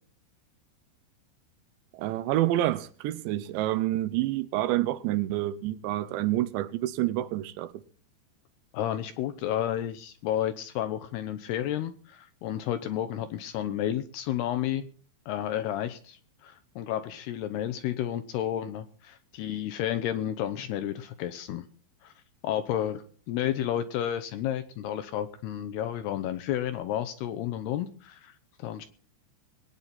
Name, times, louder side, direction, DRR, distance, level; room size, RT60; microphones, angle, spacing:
voice 1, 1.9-7.8, right 14 dB, 80° right, 3.0 m, -28 dB
voice 2, 8.7-14.9 15.3-21.7 22.0-22.1 22.4-28.9, left 11 dB, 80° left, 2.5 m, -31 dB
22.5 x 9.6 x 4.2 m
omnidirectional pair, 5.4 m